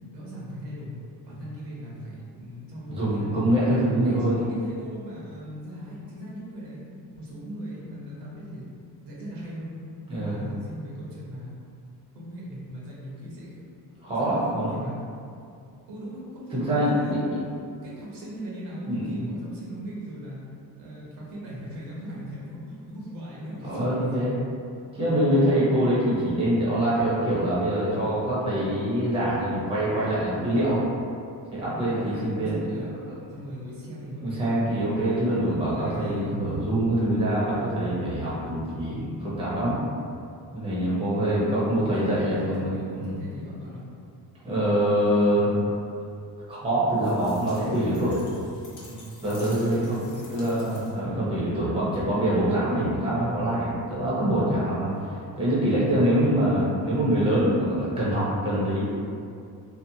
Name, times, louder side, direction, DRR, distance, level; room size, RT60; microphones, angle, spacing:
voice 1, 0.1-1.0 1.3-3.6 4.0-6.9 7.1-8.7 9.1-9.7 10.1-11.5 12.1-13.6 14.1-15.0 15.9-17.4 17.8-20.4 20.8-24.1 31.7-32.9 33.3-34.7 35.3-36.4 37.5-38.0 41.8-43.8 45.3-45.7 47.4-48.4 48.9-49.2 50.1-50.8, equal, 75° right, -6 dB, 0.9 m, -39 dB
voice 2, 2.9-4.4 10.1-10.4 14.0-14.7 16.5-17.2 18.8-19.3 23.7-24.3 24.9-30.8 31.5-32.6 34.2-39.8 40.5-43.1 44.4-45.5 46.5-48.1 49.2-50.0 50.3-54.9 55.4-58.8, right 1 dB, 15° right, -8 dB, 0.7 m, -24 dB
sound 1, 47.0-51.2, left 2 dB, 45° left, 0.7 m, -50 dB
2.8 x 2.0 x 2.6 m, 2.4 s
cardioid pair, 125°, 41 cm